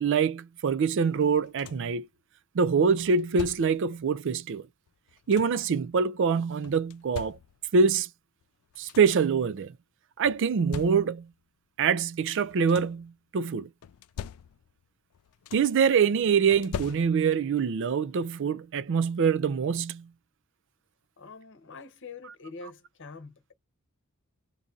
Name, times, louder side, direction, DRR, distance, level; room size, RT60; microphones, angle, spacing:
voice 1, 0.0-2.1 2.5-4.7 5.3-7.4 7.7-8.1 8.8-9.7 10.2-11.3 11.8-13.7 15.5-20.1, right 6 dB, 55° right, 0.4 m, -25 dB
sound 1, 1.2-2.0 3.0-3.9 4.9-5.7 6.6-7.8 8.4-8.5 8.7-9.3 10.2-11.4 12.3-13.1 13.8-14.9 15.1-15.9 16.5-17.5 18.8-18.9 19.4-19.6, left 8 dB, 80° left, 0.4 m, -43 dB
voice 2, 21.2-23.5, left 4 dB, 55° left, 0.9 m, -45 dB
2.8 x 2.5 x 3.8 m
head